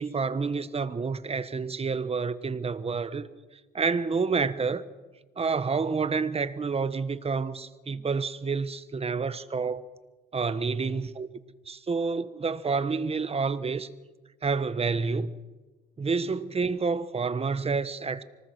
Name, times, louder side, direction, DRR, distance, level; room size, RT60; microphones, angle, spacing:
voice 1, 0.0-3.3 3.7-4.8 5.4-9.8 10.3-11.3 11.7-13.9 14.4-15.3 16.0-18.2, right 4 dB, 30° right, 1.2 m, -29 dB
25.5 x 19.0 x 6.2 m
cardioid pair, 90°, 20 cm